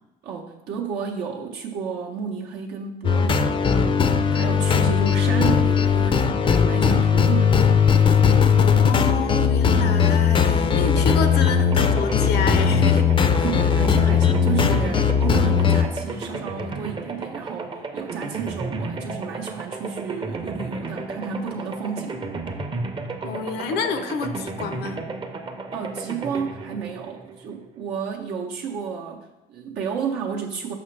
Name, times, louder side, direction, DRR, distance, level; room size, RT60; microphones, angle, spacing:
voice 1, 0.2-7.8 13.4-22.2 25.7-30.7, right 6 dB, 80° right, -1 dB, 0.7 m, -32 dB
Retro tense loop, 3.0-15.9, left 6 dB, 30° left, 0.4 m, -19 dB
voice 2, 8.6-13.1 23.2-25.0, left 5 dB, 75° left, 9 dB, 0.6 m, -28 dB
sound 1, 10.8-27.8, right 3 dB, 30° right, 0.6 m, -33 dB
5.8 x 5.8 x 3.2 m, 0.98 s
cardioid pair, 110°, 17 cm